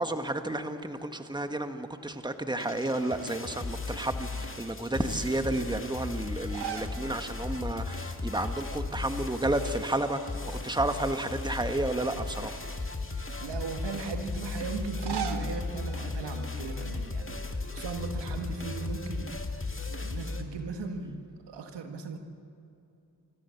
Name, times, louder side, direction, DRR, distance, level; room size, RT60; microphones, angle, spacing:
voice 1, 0.0-12.6, right 1 dB, 10° right, 7 dB, 1.6 m, -31 dB
sound 1, 2.5-20.4, left 3 dB, 30° left, 2.1 m, -36 dB
sound 2, 6.4-7.0 7.4-7.5 8.8-9.3 9.6-10.8 11.3-11.4 12.3-13.5 14.8-17.0, right 8 dB, 70° right, 1.6 m, -41 dB
voice 2, 13.4-19.3 19.9-22.2, right 4 dB, 90° right, 5 dB, 1.7 m, -37 dB
25.5 x 14.5 x 7.1 m, 2.7 s
cardioid pair, 45°, 41 cm